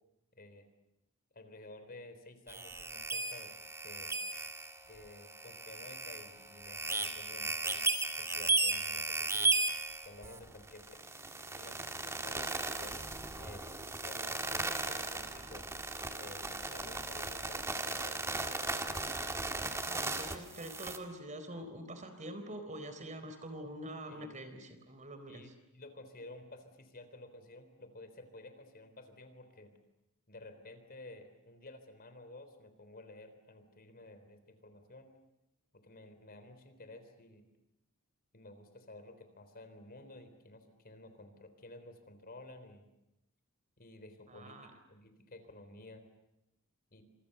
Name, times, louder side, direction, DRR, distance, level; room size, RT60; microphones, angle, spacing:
voice 1, 0.4-0.7 1.3-3.5 3.8-4.1 4.9-7.8 8.2-9.5 10.0-10.9 11.5-13.0 13.3-13.7 14.0-15.7 16.2-18.3 24.1-24.3 25.3-29.7 30.3-35.1 35.7-37.5 38.3-42.8 43.8-46.1 46.9-47.0, left 2 dB, 40° left, 9 dB, 3.8 m, -53 dB
sound 1, 2.5-21.0, right 3 dB, 10° right, 2.1 m, -36 dB
voice 2, 19.8-25.5 44.3-44.7, right 1 dB, 35° right, 8 dB, 4.1 m, -45 dB
29.5 x 27.0 x 6.8 m, 0.91 s
head